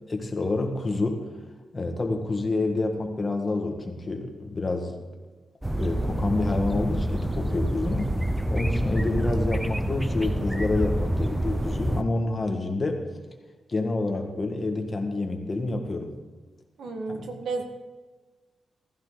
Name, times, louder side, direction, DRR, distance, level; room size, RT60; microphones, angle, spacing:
voice 1, 0.1-1.3 1.7-5.0 5.7-8.2 8.5-13.0 13.7-16.2 17.1-17.3, left 2 dB, 25° left, 3 dB, 1.7 m, -28 dB
sound 1, 5.6-12.0, right 1 dB, 5° right, 0.7 m, -27 dB
voice 2, 16.8-17.6, right 3 dB, 85° right, 4 dB, 1.7 m, -32 dB
15.0 x 14.5 x 3.9 m, 1.3 s
wide cardioid pair, 135°, 0 cm